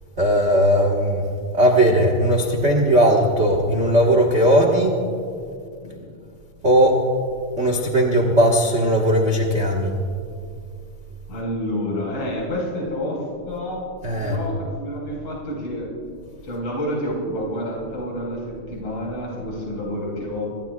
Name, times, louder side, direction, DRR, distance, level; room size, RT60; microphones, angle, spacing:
voice 1, 0.2-1.2 1.5-5.0 6.6-7.1 7.6-9.9 14.0-14.4, equal, 45° right, 0 dB, 0.8 m, -18 dB
voice 2, 5.8-6.1 11.3-15.9 16.4-20.5, equal, 50° left, -4 dB, 5.6 m, -29 dB
27.0 x 21.5 x 2.3 m, 2.3 s
omnidirectional pair, 3.6 m